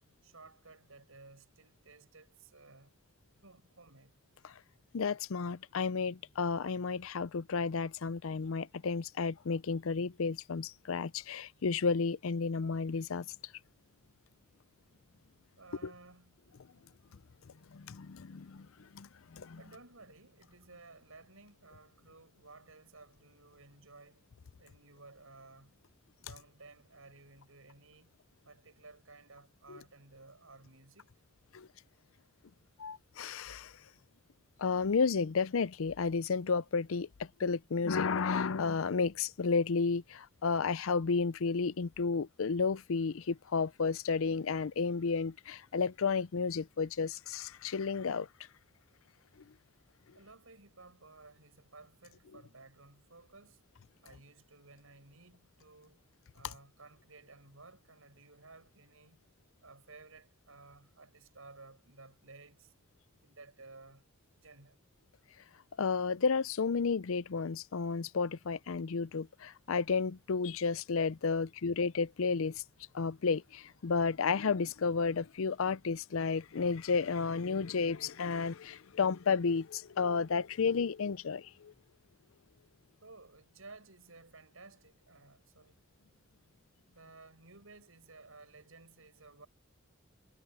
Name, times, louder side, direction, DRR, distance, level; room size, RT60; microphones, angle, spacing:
voice 1, 0.2-3.0 3.4-4.1 15.6-16.5 19.6-24.3 24.6-25.7 26.2-28.1 28.4-31.1 50.1-53.6 54.0-56.0 56.3-59.2 59.6-62.7 63.2-64.0 64.4-64.8 83.0-85.8 86.9-89.5, right 3 dB, 75° right, 6.4 m, -56 dB
voice 2, 4.9-13.3 15.8-15.9 17.7-19.6 29.7-29.8 31.5-31.7 32.8-33.7 34.6-48.3 65.8-72.6 72.9-81.7, left 5 dB, 70° left, 0.5 m, -32 dB
head